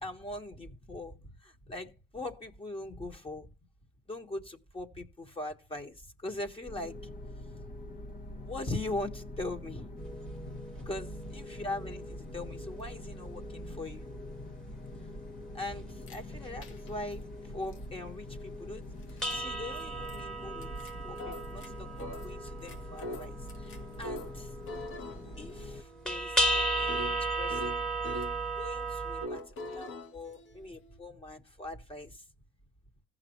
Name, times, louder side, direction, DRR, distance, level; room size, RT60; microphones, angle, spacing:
voice 1, 0.0-3.5 4.1-7.0 8.3-9.9 10.9-14.1 15.5-18.8 19.1-20.7 21.0-24.5 25.4-27.8 28.6-32.2, left 2 dB, 25° left, 1.8 m, -41 dB
sound 1, 6.7-25.8, left 1 dB, 45° left, 1.4 m, -44 dB
sound 2, 10.0-17.2 17.5-18.0 18.3-18.4 18.8-29.3, right 1 dB, 5° left, 1.4 m, -36 dB
sound 3, 16.0-16.2 16.6-17.1 17.7-17.8 19.0-19.4 19.8-19.9 20.1-20.2 20.6-21.7 22.0-24.3 24.7-28.4 29.2-31.0, left 1 dB, 85° left, 1.7 m, -43 dB
16.0 x 5.9 x 3.2 m
cardioid pair, 90°, 20 cm